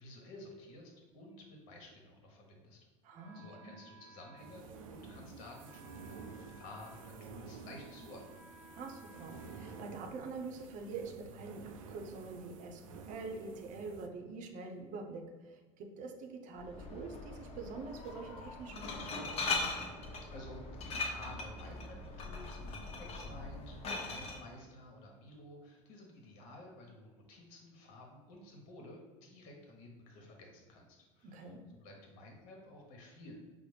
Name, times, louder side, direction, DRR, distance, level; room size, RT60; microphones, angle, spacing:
voice 1, 0.0-2.8 3.3-8.3 20.2-33.4, left 1 dB, 65° left, 1 dB, 1.0 m, -53 dB
voice 2, 3.0-3.7 8.7-19.7 31.2-31.6, right 4 dB, 50° right, 3 dB, 0.7 m, -45 dB
Wind instrument woodwind instrument, 3.1-10.9, right 1 dB, 10° right, 0.6 m, -60 dB
sound 1, 4.4-14.1, right 5 dB, 85° right, 0.4 m, -51 dB
Glass, 16.6-24.4, left 3 dB, 40° left, 0.8 m, -40 dB
4.8 x 2.0 x 3.2 m, 1.3 s
hypercardioid pair, 85°, 17 cm